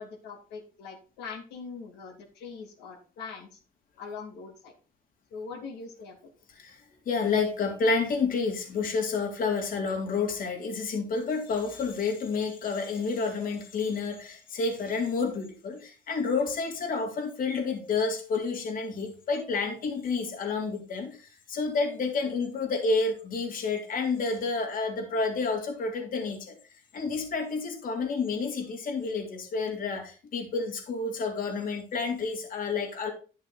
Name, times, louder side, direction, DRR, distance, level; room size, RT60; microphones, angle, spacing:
voice 1, 0.0-3.5 4.0-4.7 5.3-6.2, left 5 dB, 85° left, -1 dB, 2.8 m, -42 dB
voice 2, 6.6-26.6 26.9-33.1, left 4 dB, 55° left, 2 dB, 3.3 m, -30 dB
11.0 x 6.4 x 4.2 m, 0.36 s
cardioid pair, 110°, 17 cm